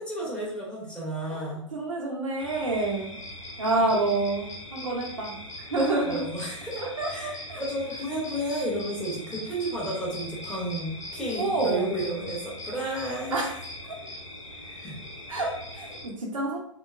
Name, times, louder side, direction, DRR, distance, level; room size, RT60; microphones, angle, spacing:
voice 1, 0.0-1.6 3.7-4.0 6.0-13.4 14.7-15.0, right 1 dB, 5° left, -6 dB, 1.1 m, -32 dB
voice 2, 1.7-3.2 3.6-5.3 5.7-6.3 6.8-7.6 11.4-11.9 13.3-13.5 15.3-16.6, right 2 dB, 80° right, -2 dB, 0.6 m, -28 dB
sound 1, 2.4-16.1, left 1 dB, 70° left, 0.7 m, -41 dB
2.9 x 2.0 x 2.4 m, 0.67 s
figure-of-eight pair, 105°, 17 cm